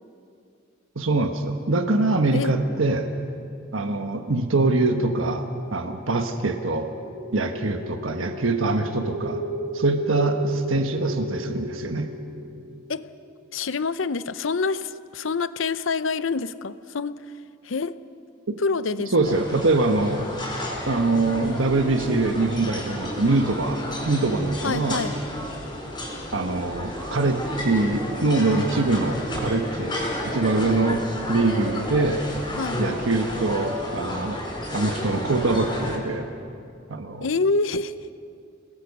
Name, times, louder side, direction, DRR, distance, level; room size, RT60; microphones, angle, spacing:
voice 1, 0.9-3.1 3.7-6.9 7.3-9.4 9.7-12.1 19.1-20.3 20.9-25.0 26.3-29.9 30.2-31.0 31.3-32.2 32.8-34.4 34.7-36.3 36.9-37.3, right 2 dB, 90° right, 6 dB, 1.3 m, -23 dB
sound 1, 6.9-13.5, right 1 dB, 45° right, 7.1 m, -33 dB
voice 2, 13.5-17.2 17.6-18.0 18.6-19.4 24.6-25.1 30.6-30.8 32.6-32.8 37.2-38.1, left 4 dB, 75° left, 14 dB, 0.6 m, -27 dB
sound 2, 19.2-36.0, equal, 20° left, 4.5 m, -32 dB
29.5 x 18.5 x 5.4 m, 2.5 s
head